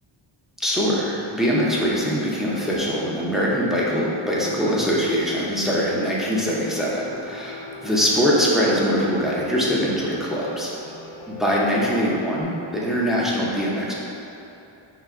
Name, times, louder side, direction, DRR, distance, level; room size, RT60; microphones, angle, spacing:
voice 1, 0.6-10.7 11.3-13.9, equal, ahead, -6 dB, 0.6 m, -23 dB
Piano, 6.8-12.4, left 2 dB, 60° left, 0.6 m, -40 dB
5.7 x 2.2 x 3.6 m, 2.9 s
wide cardioid pair, 130°, 48 cm